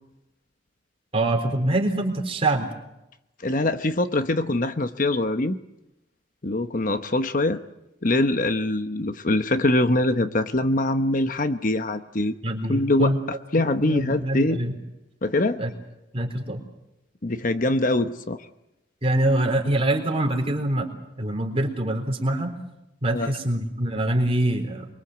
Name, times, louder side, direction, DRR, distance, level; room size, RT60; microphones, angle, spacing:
voice 1, 1.1-2.7 12.4-13.2 13.6-14.7 15.6-15.7 16.1-16.6 19.0-20.9 21.2-22.5 23.0-24.9, right 1 dB, 30° right, 4 dB, 3.9 m, -24 dB
voice 2, 3.4-5.6 6.4-7.6 8.0-12.4 12.7-13.1 13.5-14.6 15.2-15.6 17.2-18.5 23.1-23.3, left 2 dB, 45° left, 9 dB, 0.9 m, -23 dB
24.0 x 24.0 x 8.0 m, 0.90 s
head